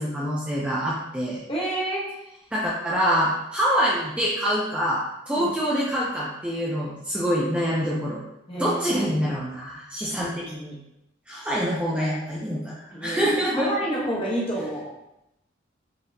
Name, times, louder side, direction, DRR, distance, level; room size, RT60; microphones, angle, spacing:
voice 1, 0.0-1.4 2.5-8.2 8.6-10.8 11.3-13.7, equal, 5° right, -6 dB, 0.4 m, -25 dB
voice 2, 1.5-2.0 5.4-5.5 8.5-9.3 12.0-12.1 12.9-14.9, right 1 dB, 30° left, -4 dB, 0.9 m, -29 dB
4.1 x 2.8 x 2.6 m, 0.86 s
head